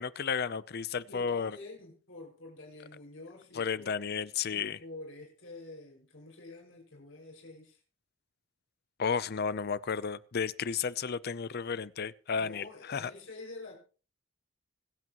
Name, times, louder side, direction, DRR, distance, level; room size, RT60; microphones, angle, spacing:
voice 1, 0.0-1.6 3.5-4.8 9.0-13.1, left 6 dB, 55° left, 0.6 m, -33 dB
voice 2, 1.0-3.9 4.4-7.8 12.4-13.7, left 2 dB, 85° left, 5.8 m, -48 dB
25.5 x 8.5 x 3.0 m
head